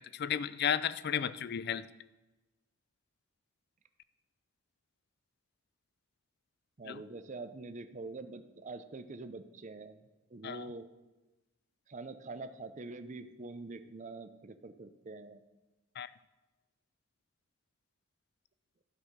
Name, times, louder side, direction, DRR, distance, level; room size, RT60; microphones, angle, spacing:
voice 1, 0.0-1.9 6.9-7.0 10.4-10.7 16.0-16.1, left 8 dB, 50° left, 16 dB, 0.4 m, -33 dB
voice 2, 6.8-10.0 10.3-10.9 11.9-15.4, right 3 dB, 35° right, 10 dB, 0.5 m, -45 dB
12.5 x 5.6 x 6.5 m, 1.1 s
head